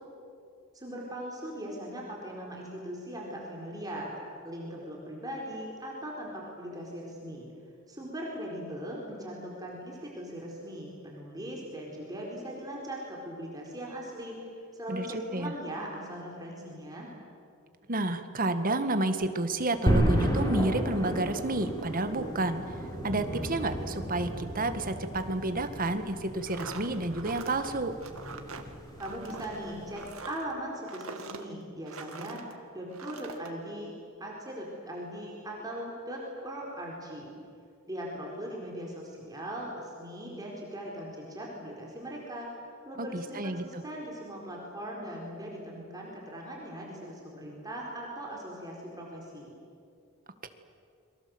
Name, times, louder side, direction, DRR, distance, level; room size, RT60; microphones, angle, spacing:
voice 1, 0.7-4.1 4.4-7.5 7.9-14.4 14.7-17.1 29.0-32.4 32.7-33.9 34.2-37.3 37.9-42.5 42.9-49.5, equal, 20° right, -2 dB, 4.4 m, -39 dB
voice 2, 14.9-15.5 17.9-22.7 23.0-27.9 43.0-43.8, right 2 dB, 45° right, 8 dB, 1.8 m, -30 dB
sound 1, 19.9-30.1, equal, 20° left, 5.8 m, -33 dB
sound 2, 26.4-32.5 32.9-33.5, right 4 dB, 85° right, 2.1 m, -44 dB
29.0 x 23.5 x 7.9 m, 2.5 s
head